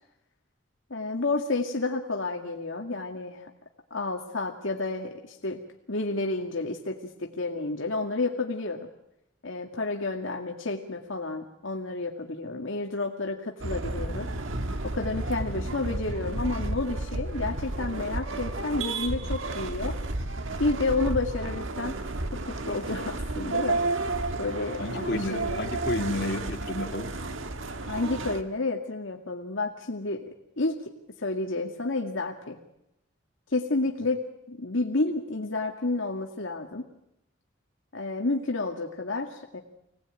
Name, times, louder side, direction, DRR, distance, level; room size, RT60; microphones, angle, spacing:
voice 1, 0.9-3.5 3.9-5.6 5.9-8.9 9.4-14.3 14.8-20.0 20.6-22.0 22.3-23.8 24.4-25.6 27.8-30.2 30.6-30.8 31.2-32.6 33.5-36.8 37.9-39.6, left 3 dB, 80° left, 1 dB, 2.1 m, -30 dB
sound 1, 13.6-28.4, right 2 dB, 80° right, 1.5 m, -32 dB
voice 2, 24.8-27.1, left 1 dB, 55° left, 2 dB, 3.0 m, -31 dB
26.0 x 18.5 x 9.0 m, 0.84 s
head